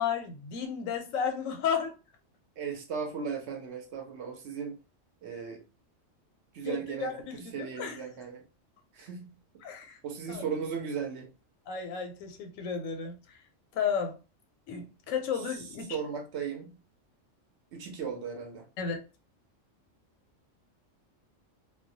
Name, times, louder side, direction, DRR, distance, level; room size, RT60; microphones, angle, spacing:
voice 1, 0.0-1.9 6.6-8.0 9.6-10.0 10.3-10.4 11.7-13.4 13.7-14.2 14.7-16.0 18.8-19.0, left 7 dB, 85° left, 1.0 m, -33 dB
voice 2, 2.6-4.8 5.2-5.6 6.5-7.1 7.5-8.4 9.0-9.3 10.0-11.3 15.9-16.7 17.7-18.6, right 6 dB, 65° right, 0.8 m, -36 dB
2.3 x 2.1 x 2.6 m
omnidirectional pair, 1.3 m